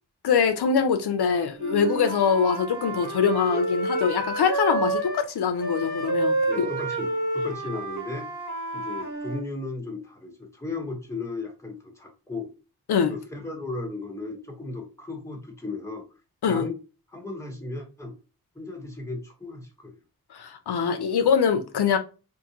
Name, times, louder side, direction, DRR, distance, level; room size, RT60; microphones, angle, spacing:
voice 1, 0.2-6.7 12.9-13.1 16.4-16.7 20.3-22.0, left 6 dB, 80° left, 0.6 m, -23 dB
Wind instrument woodwind instrument, 1.6-5.3 5.6-9.4, right 2 dB, 50° right, 1.5 m, -29 dB
voice 2, 6.5-8.3 8.7-12.5 13.1-16.1 16.5-16.8 17.1-18.1 18.5-20.0, left 3 dB, 5° left, 1.2 m, -35 dB
3.7 x 2.6 x 2.9 m
wide cardioid pair, 65°, 38 cm